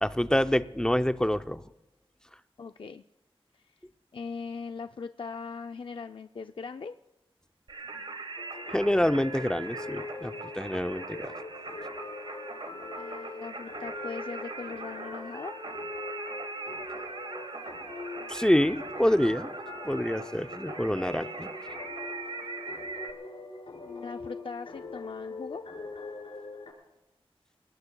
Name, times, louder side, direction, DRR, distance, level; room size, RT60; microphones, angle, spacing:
voice 1, 0.0-1.6 8.7-11.3 18.3-19.5 19.8-21.5, left 1 dB, 5° left, 10 dB, 0.5 m, -26 dB
voice 2, 2.6-3.0 3.5-3.7 4.1-6.9 13.0-15.5 23.8-25.6, left 5 dB, 60° left, 7 dB, 0.4 m, -40 dB
Singing, 7.7-23.1, right 3 dB, 65° right, 1.3 m, -41 dB
sound 1, 8.4-26.7, left 3 dB, 90° left, 5.0 m, -42 dB
29.0 x 18.5 x 2.3 m, 0.96 s
wide cardioid pair, 80°, 10 cm